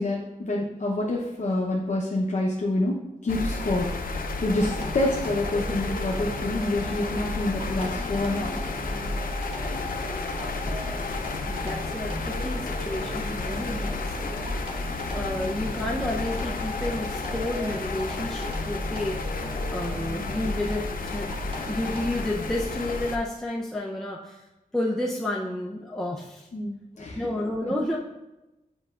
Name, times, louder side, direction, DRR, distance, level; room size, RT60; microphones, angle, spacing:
voice 1, 0.0-4.0 4.4-8.5 15.3-15.5 26.5-27.3 27.6-27.7, left 2 dB, 55° left, -3 dB, 0.8 m, -27 dB
sound 1, 3.3-23.2, left 3 dB, 85° left, 0.6 m, -31 dB
sound 2, 4.4-22.2, equal, 40° right, 1.4 m, -39 dB
voice 2, 11.5-14.9 15.1-19.4 19.7-24.4 24.7-26.5 27.0-28.0, left 1 dB, 5° left, -3 dB, 0.6 m, -31 dB
8.0 x 5.4 x 2.5 m, 0.97 s
wide cardioid pair, 105°, 14 cm